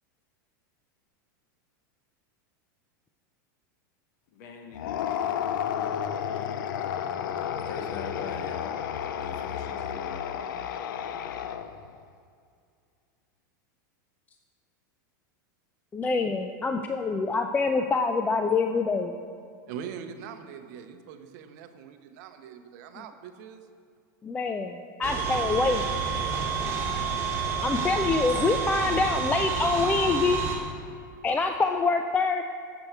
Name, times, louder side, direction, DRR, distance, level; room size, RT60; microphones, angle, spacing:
voice 1, 4.3-7.3 7.6-8.8 9.2-10.5, left 4 dB, 65° left, 4 dB, 1.2 m, -44 dB
sound 1, 4.7-11.9, left 9 dB, 80° left, 0.5 m, -32 dB
voice 2, 15.9-19.2 24.2-25.8 27.6-30.4 31.2-32.4, left 4 dB, 15° left, 6 dB, 0.3 m, -25 dB
voice 3, 19.7-23.6, right 7 dB, 60° right, 8 dB, 0.7 m, -42 dB
sound 2, 25.0-30.6, right 6 dB, 25° right, 2.0 m, -29 dB
7.9 x 6.9 x 4.4 m, 2.3 s
supercardioid pair, 120°, 11 cm